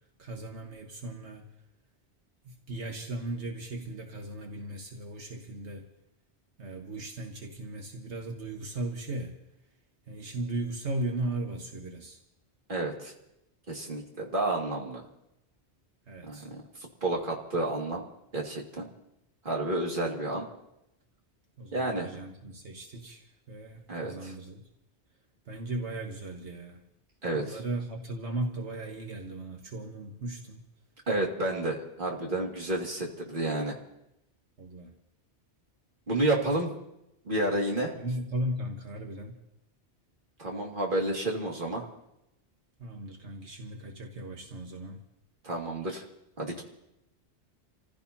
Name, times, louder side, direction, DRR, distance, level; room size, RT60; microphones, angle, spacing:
voice 1, 0.2-1.4 2.4-5.9 6.6-9.4 10.1-12.2 16.1-16.5 21.6-24.6 25.5-26.8 27.3-30.6 34.6-34.9 38.0-39.4 42.8-45.0, right 2 dB, 80° right, 1 dB, 1.7 m, -37 dB
voice 2, 12.7-13.1 13.7-15.0 16.2-18.0 18.3-18.9 19.4-20.5 21.7-22.1 23.9-24.3 27.2-27.6 31.1-33.8 36.1-36.7 37.2-37.9 40.4-41.9 45.4-46.0 46.4-46.6, right 2 dB, 50° right, -1 dB, 2.4 m, -30 dB
29.0 x 15.5 x 2.8 m, 0.85 s
omnidirectional pair, 1.1 m